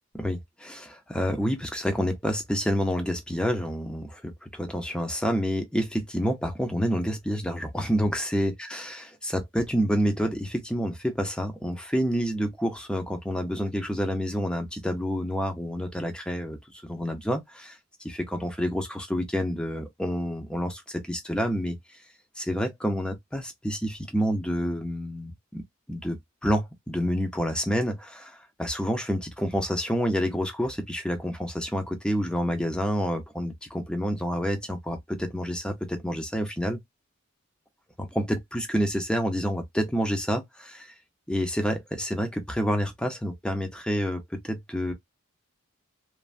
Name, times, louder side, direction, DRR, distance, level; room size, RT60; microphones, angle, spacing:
voice 1, 0.2-22.0 22.4-25.6 25.9-36.8 38.0-40.9 41.3-44.9, equal, 5° left, 0.5 m, -28 dB
3.2 x 2.1 x 2.4 m
head